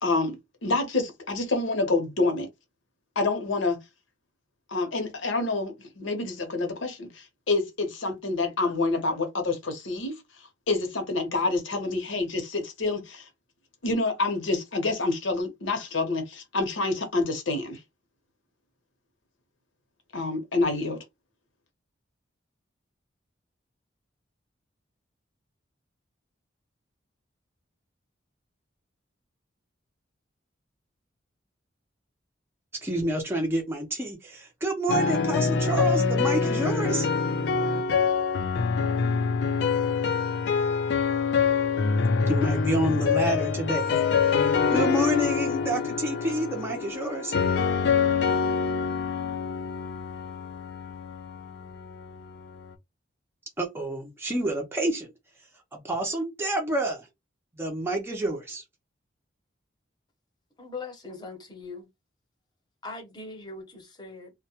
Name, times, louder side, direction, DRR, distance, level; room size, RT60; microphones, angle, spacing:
voice 1, 0.0-2.5 3.2-3.8 4.7-10.2 10.7-13.2 13.8-17.8 20.1-21.0, left 3 dB, 85° left, 0.9 m, -27 dB
voice 2, 32.8-37.1 42.3-44.3 44.7-47.4 53.6-55.1 55.7-57.1 57.6-58.6, right 1 dB, 10° right, 0.5 m, -29 dB
sound 1, 34.9-52.7, left 5 dB, 65° left, 0.4 m, -25 dB
voice 3, 60.6-61.9 62.8-64.3, left 3 dB, 20° left, 0.7 m, -40 dB
2.1 x 2.1 x 2.8 m
head